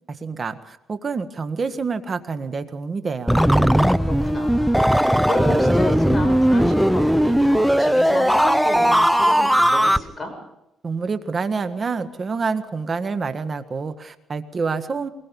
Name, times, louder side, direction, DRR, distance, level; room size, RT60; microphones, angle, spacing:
voice 1, 0.1-3.4 10.8-15.1, right 4 dB, 40° right, 9 dB, 1.6 m, -27 dB
sound 1, 3.3-10.0, equal, 5° right, 0.6 m, -18 dB
voice 2, 4.0-10.3, left 1 dB, 20° left, 4 dB, 7.4 m, -30 dB
23.0 x 21.0 x 5.4 m, 0.84 s
cardioid pair, 90°, 0 cm